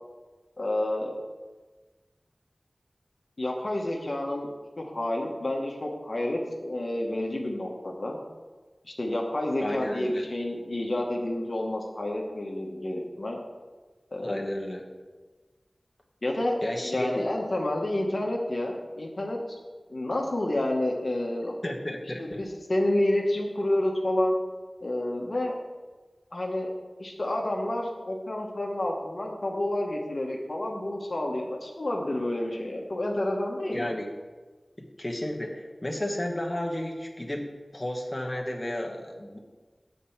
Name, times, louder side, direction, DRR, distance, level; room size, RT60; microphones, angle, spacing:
voice 1, 0.6-1.2 3.4-4.5 4.8-8.2 8.8-13.4 14.1-14.4 16.2-19.4 19.9-21.5 22.2-24.3 24.8-25.5 26.3-26.7 27.0-33.9, left 1 dB, 60° left, 0 dB, 1.2 m, -29 dB
voice 2, 9.6-10.2 14.2-14.8 16.6-17.3 21.6-22.4 33.6-34.1 35.0-39.4, left 1 dB, 25° left, 0 dB, 1.2 m, -32 dB
8.5 x 4.4 x 7.0 m, 1.3 s
wide cardioid pair, 60°, 0 cm